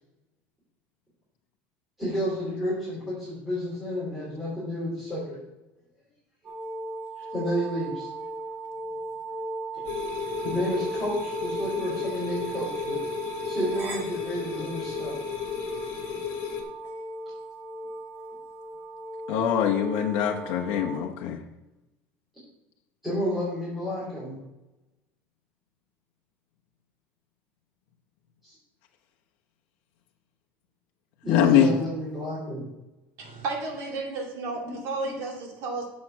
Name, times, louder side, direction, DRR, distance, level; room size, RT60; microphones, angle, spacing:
voice 1, 2.0-5.4 7.2-8.1 9.7-9.8 10.4-13.0 13.4-15.1 23.0-24.4 28.4-28.6 31.2-32.6 33.8-33.9 34.4-35.1, equal, 5° right, -10 dB, 3.7 m, -31 dB
sound 1, 6.4-21.0, right 2 dB, 40° right, 1.6 m, -37 dB
sound 2, 9.8-16.6, left 8 dB, 50° left, 1.9 m, -34 dB
voice 2, 19.3-21.4 31.3-31.7, left 9 dB, 75° left, 0 dB, 1.0 m, -23 dB
voice 3, 33.2-35.9, right 3 dB, 55° right, 0 dB, 2.6 m, -33 dB
7.5 x 6.4 x 6.0 m, 0.99 s
cardioid pair, 155°, 5 cm